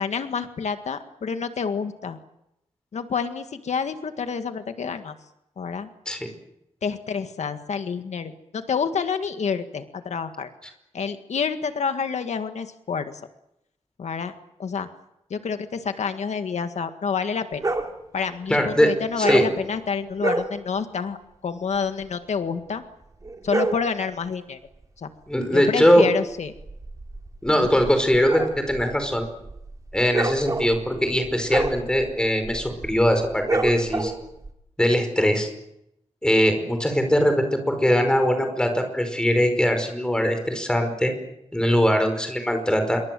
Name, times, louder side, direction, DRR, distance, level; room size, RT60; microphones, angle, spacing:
voice 1, 0.0-2.2 2.9-5.2 5.6-5.9 6.8-10.5 10.9-13.2 14.0-14.3 14.6-14.9 15.3-17.6 18.1-21.2 21.4-22.8 23.4-24.6 25.0-25.1 25.5-26.5 27.6-27.7, left 6 dB, 80° left, 8 dB, 1.8 m, -28 dB
sound 1, 17.6-18.0 19.2-19.6 20.2-20.5 23.2-23.9 26.5-34.5, right 2 dB, 30° right, 2.9 m, -28 dB
voice 2, 18.5-18.9 19.2-19.4 25.3-26.0 27.4-29.2 29.9-34.1 34.8-35.5 36.2-41.1 41.5-43.0, equal, 5° left, 6 dB, 5.1 m, -21 dB
27.0 x 23.5 x 7.7 m, 0.83 s
wide cardioid pair, 165°, 11 cm